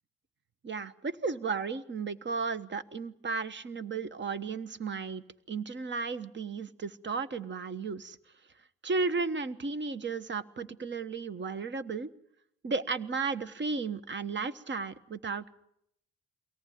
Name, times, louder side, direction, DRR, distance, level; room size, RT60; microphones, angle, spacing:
voice 1, 0.6-8.2 8.8-12.1 12.6-15.5, right 4 dB, 40° right, 14 dB, 1.3 m, -34 dB
23.0 x 18.0 x 9.5 m, 0.75 s
cardioid pair, 90°, 30 cm